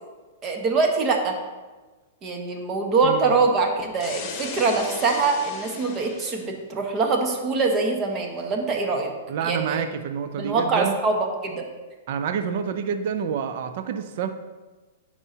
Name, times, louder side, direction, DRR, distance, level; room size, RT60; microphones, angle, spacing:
voice 1, 0.4-1.3 2.2-9.1 9.4-9.8 10.4-11.2 11.4-11.7, right 4 dB, 30° right, 2 dB, 1.3 m, -23 dB
sound 1, 4.0-6.5, left 5 dB, 35° left, 1.1 m, -37 dB
voice 2, 9.3-11.0 12.1-14.3, right 7 dB, 60° right, 9 dB, 0.5 m, -28 dB
10.5 x 4.7 x 2.9 m, 1.3 s
hypercardioid pair, 130°, 0 cm